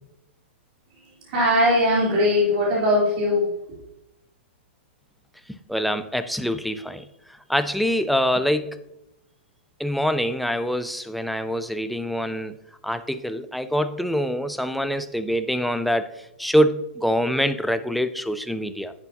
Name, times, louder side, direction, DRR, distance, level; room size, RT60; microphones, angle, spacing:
voice 1, 1.0-3.8, left 1 dB, 45° right, -6 dB, 3.7 m, -21 dB
voice 2, 5.5-7.1 7.5-8.8 9.8-12.5 12.8-16.1 16.4-18.9, equal, ahead, 9 dB, 0.3 m, -24 dB
10.5 x 8.1 x 2.9 m, 0.88 s
hypercardioid pair, 165°, 7 cm